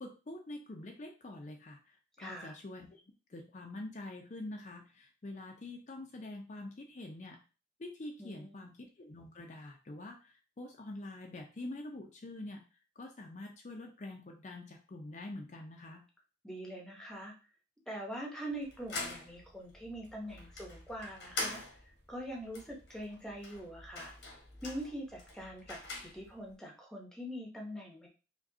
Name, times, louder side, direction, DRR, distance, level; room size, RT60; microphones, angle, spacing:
voice 1, 0.0-3.0 3.3-7.4 7.8-12.6 13.0-16.0, left 2 dB, 45° left, 2 dB, 0.5 m, -46 dB
voice 2, 2.2-2.5 8.2-8.7 16.4-17.3 17.9-21.6 22.1-24.1 24.6-28.1, equal, 5° left, -1 dB, 0.7 m, -43 dB
sound 1, 18.5-26.5, left 2 dB, 85° left, 1.1 m, -45 dB
4.8 x 2.2 x 2.7 m, 0.33 s
head